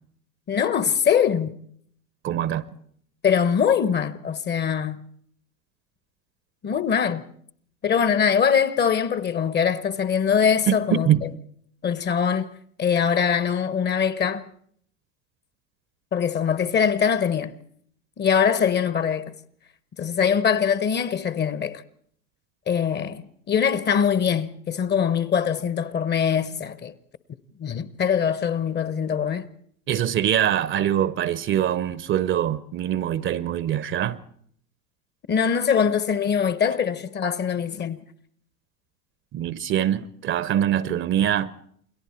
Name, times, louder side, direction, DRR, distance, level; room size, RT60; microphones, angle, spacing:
voice 1, 0.5-1.5 3.2-5.0 6.6-7.3 7.8-11.3 11.8-12.5 12.8-14.4 16.1-17.5 18.2-19.3 20.0-21.8 22.7-26.9 27.6-29.5 35.3-38.0, left 7 dB, 25° left, 0.9 m, -22 dB
voice 2, 2.2-2.7 10.7-11.2 29.9-34.2 39.3-41.5, right 10 dB, 25° right, 0.7 m, -23 dB
29.0 x 22.0 x 4.4 m
hypercardioid pair, 90°, 46 cm